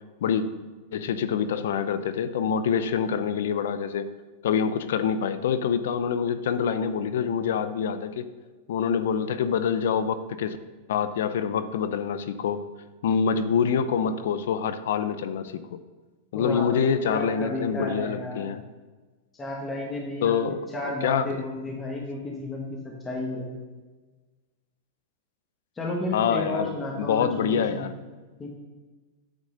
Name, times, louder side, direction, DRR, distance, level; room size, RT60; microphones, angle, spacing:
voice 1, 0.9-4.1 4.4-8.3 8.7-10.6 10.9-12.6 13.0-15.8 16.3-18.6 20.2-20.7 21.0-21.4 26.1-27.9, left 7 dB, 80° left, 12 dB, 0.6 m, -26 dB
voice 2, 16.3-18.5 19.4-23.5 25.8-27.9 28.4-28.5, left 2 dB, 15° left, -2 dB, 1.3 m, -32 dB
8.9 x 3.7 x 6.5 m, 1.3 s
supercardioid pair, 135°, 0 cm